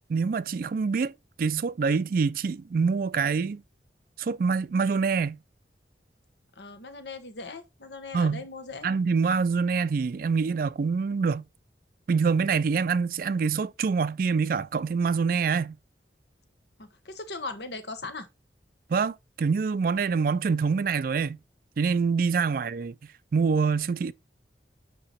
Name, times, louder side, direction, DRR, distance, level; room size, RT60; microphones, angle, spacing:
voice 1, 0.1-1.1 1.4-3.6 4.2-5.4 8.1-8.4 8.8-11.4 12.1-15.8 18.9-21.4 21.8-23.0 23.3-24.1, right 5 dB, 50° right, 0.3 m, -25 dB
voice 2, 6.6-8.9 16.8-18.3 22.5-22.6, left 3 dB, 70° left, 1.2 m, -39 dB
8.7 x 2.9 x 4.3 m
head